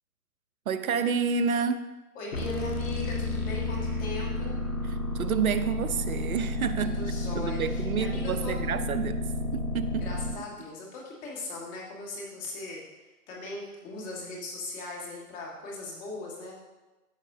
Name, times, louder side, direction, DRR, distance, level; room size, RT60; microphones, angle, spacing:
voice 1, 0.7-1.9 5.1-7.0 7.3-9.2 9.5-10.1, right 6 dB, 65° right, 12 dB, 0.8 m, -29 dB
voice 2, 2.1-4.6 6.8-8.6 10.0-16.6, left 2 dB, 20° left, -2 dB, 1.7 m, -39 dB
sound 1, 2.3-10.3, left 1 dB, 65° left, 1.8 m, -31 dB
13.5 x 6.3 x 2.7 m, 1.1 s
hypercardioid pair, 140°, 46 cm